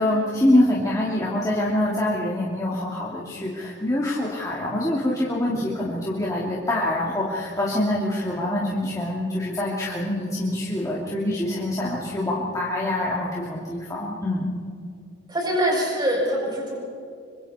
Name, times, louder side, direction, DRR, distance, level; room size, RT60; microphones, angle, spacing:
voice 1, 0.0-14.5, left 1 dB, 15° left, -6 dB, 3.0 m, -25 dB
voice 2, 15.3-16.8, equal, 20° right, -3 dB, 7.8 m, -24 dB
26.0 x 25.5 x 4.4 m, 2.4 s
head